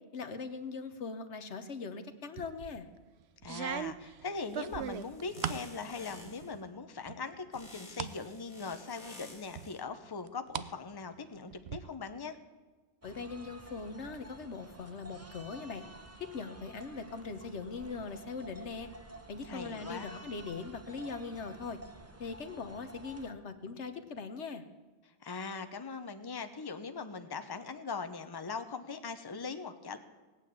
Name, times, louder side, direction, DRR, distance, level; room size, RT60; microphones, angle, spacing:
voice 1, 0.1-2.9 13.0-15.8 16.2-18.9 19.3-21.8 22.2-24.6, left 4 dB, 80° left, 9 dB, 1.4 m, -41 dB
sound 1, 2.4-2.8 3.4-5.7 6.1-6.7 7.1-8.2 8.6-8.7 9.6-10.7 11.0-11.8, right 9 dB, 70° right, 0.9 m, -39 dB
voice 2, 3.4-12.4 19.4-20.1 25.2-30.0, left 4 dB, 20° left, 8 dB, 0.9 m, -40 dB
sound 2, 4.4-6.6 7.5-9.8, left 1 dB, 40° left, 2.0 m, -52 dB
sound 3, 13.0-23.3, right 1 dB, 15° right, 0.8 m, -51 dB
18.0 x 9.0 x 8.4 m, 1.3 s
omnidirectional pair, 1.2 m